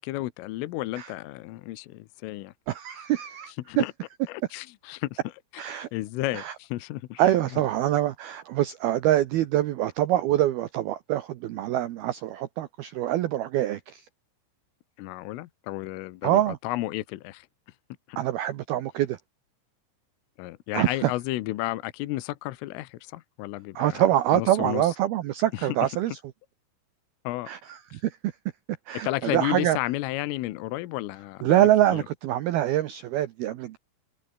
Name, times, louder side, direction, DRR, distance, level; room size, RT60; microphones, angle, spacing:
voice 1, 0.0-2.5 3.7-3.9 4.3-5.2 5.9-7.2 15.0-17.5 18.1-18.2 20.4-24.0 24.3-25.0 25.5-25.8 27.3-27.5 27.9-28.0 29.0-32.0, left 17 dB, 80° left, 3.6 m, -32 dB
voice 2, 2.7-3.8 5.6-5.9 6.3-6.5 7.2-14.0 16.2-16.6 18.2-19.2 20.7-21.1 23.8-26.2 27.5-28.3 28.9-29.8 31.4-33.8, right 13 dB, 85° right, 2.1 m, -25 dB
omnidirectional pair, 5.9 m